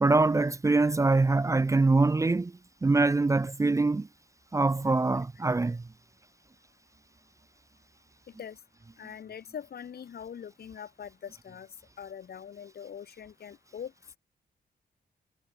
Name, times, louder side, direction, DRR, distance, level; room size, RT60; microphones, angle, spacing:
voice 1, 0.0-2.5 2.8-4.1 4.5-5.8, right 3 dB, 20° right, 0.7 m, -24 dB
voice 2, 8.3-8.6 9.0-11.7 12.0-14.2, left 8 dB, 70° left, 6.1 m, -43 dB
wide cardioid pair, 170°, 17 cm